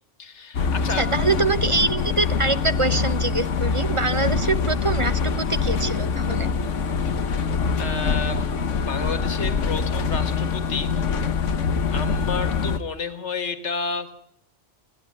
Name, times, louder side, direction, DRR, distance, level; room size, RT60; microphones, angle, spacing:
voice 1, 0.2-1.0 7.8-8.5 8.8-11.1 11.9-14.1, left 5 dB, 70° left, 10 dB, 2.1 m, -31 dB
sound 1, 0.5-12.8, left 5 dB, 90° left, 1.5 m, -24 dB
voice 2, 1.0-6.5, right 3 dB, 30° right, 14 dB, 0.9 m, -24 dB
29.0 x 11.0 x 9.6 m, 0.70 s
omnidirectional pair, 1.2 m